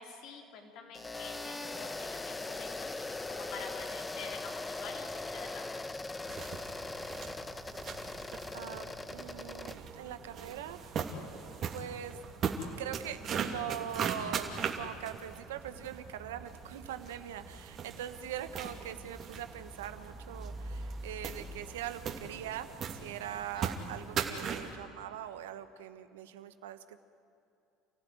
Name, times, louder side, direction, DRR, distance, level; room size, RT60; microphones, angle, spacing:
voice 1, 0.0-5.7 11.6-11.7 23.5-23.6, left 5 dB, 65° left, 2 dB, 3.9 m, -47 dB
sound 1, 0.9-9.8, left 2 dB, 20° left, 1.1 m, -40 dB
sound 2, 6.3-24.8, right 6 dB, 50° right, 2.8 m, -40 dB
voice 2, 8.5-11.1 11.7-12.2 12.8-27.0, right 11 dB, 85° right, 10 dB, 1.2 m, -42 dB
sound 3, 18.4-23.5, equal, ahead, 1.5 m, -47 dB
29.5 x 15.5 x 9.5 m, 2.7 s
hypercardioid pair, 70°, 0 cm